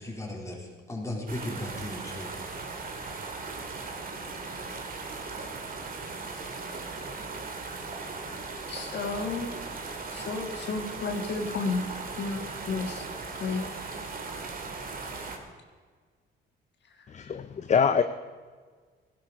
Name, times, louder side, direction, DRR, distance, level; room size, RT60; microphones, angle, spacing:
voice 1, 0.0-2.4, left 1 dB, 15° left, -1 dB, 3.8 m, -36 dB
sound 1, 1.3-15.4, right 4 dB, 45° right, 2.2 m, -38 dB
voice 2, 8.7-9.5 10.1-11.8 12.2-12.4 12.7-13.0 13.4-13.6, left 4 dB, 60° left, 4 dB, 1.7 m, -31 dB
voice 3, 17.1-18.0, left 6 dB, 35° left, 10 dB, 0.6 m, -24 dB
16.5 x 11.5 x 5.2 m, 1.5 s
cardioid pair, 90°, 20 cm